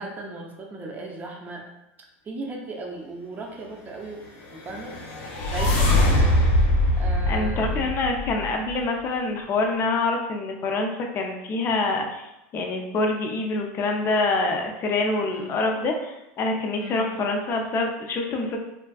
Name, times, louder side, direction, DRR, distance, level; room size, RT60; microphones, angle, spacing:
voice 1, 0.0-1.6 2.2-4.2 4.5-5.0 5.5-6.1 6.9-7.9 15.3-15.5 16.8-17.0, right 3 dB, 25° right, 0 dB, 0.5 m, -36 dB
sound 1, 4.6-8.7, left 1 dB, 80° left, 0.5 m, -22 dB
voice 2, 7.3-18.6, left 3 dB, 35° left, 2 dB, 0.4 m, -26 dB
2.5 x 2.4 x 2.3 m, 0.92 s
supercardioid pair, 115°, 7 cm